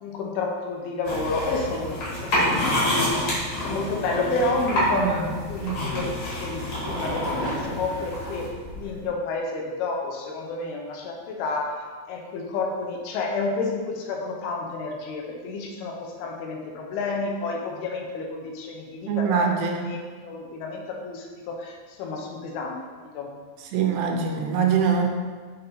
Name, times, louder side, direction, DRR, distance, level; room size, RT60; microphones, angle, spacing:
voice 1, 0.0-2.8 3.6-5.2 5.5-19.5 19.9-23.3, left 3 dB, 80° left, 1 dB, 2.6 m, -30 dB
sound 1, 1.0-8.5, left 1 dB, 50° left, 2.4 m, -27 dB
voice 2, 4.9-5.2 5.6-5.9 19.1-19.9 23.7-25.1, right 6 dB, 85° right, 3 dB, 2.8 m, -24 dB
sound 2, 5.3-9.1, equal, 55° right, 1.9 m, -37 dB
6.6 x 3.8 x 4.2 m, 1.5 s
omnidirectional pair, 4.6 m